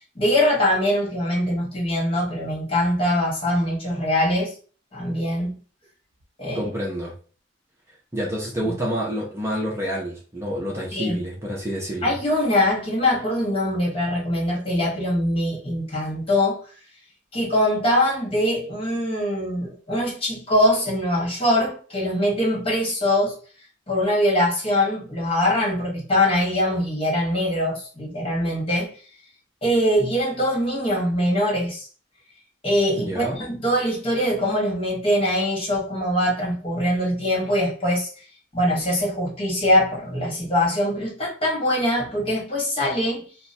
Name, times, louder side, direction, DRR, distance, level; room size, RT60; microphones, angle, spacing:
voice 1, 0.1-4.5 4.9-5.6 6.4-6.7 8.6-8.7 10.9-11.2 12.0-16.6 17.3-23.3 23.9-28.9 29.6-31.9 32.6-38.1 38.5-43.3, left 1 dB, 30° left, 1.5 m, -22 dB
voice 2, 6.5-7.1 8.1-12.2 33.0-33.4, equal, 15° right, 0.8 m, -28 dB
2.9 x 2.2 x 4.1 m
head